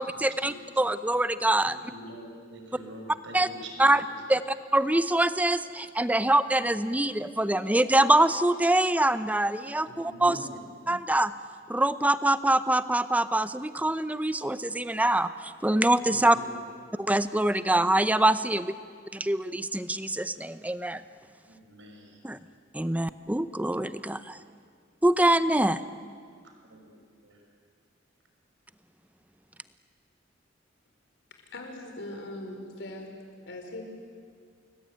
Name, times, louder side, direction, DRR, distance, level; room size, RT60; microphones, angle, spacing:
voice 1, 0.0-1.9 3.3-3.5 3.8-4.0 4.3-10.5 10.9-11.3 11.7-16.4 17.0-18.7 19.1-21.0 22.2-22.4 22.7-24.4 25.0-25.8, right 1 dB, 10° right, 13 dB, 0.7 m, -24 dB
voice 2, 1.9-3.9 9.9-10.6 16.1-16.6 21.5-22.2 26.7-27.0 27.2-27.4, right 1 dB, 75° right, 3 dB, 5.7 m, -44 dB
voice 3, 31.5-33.1 33.5-33.8, left 1 dB, 65° left, 3 dB, 4.9 m, -40 dB
29.5 x 21.0 x 9.0 m, 2.1 s
head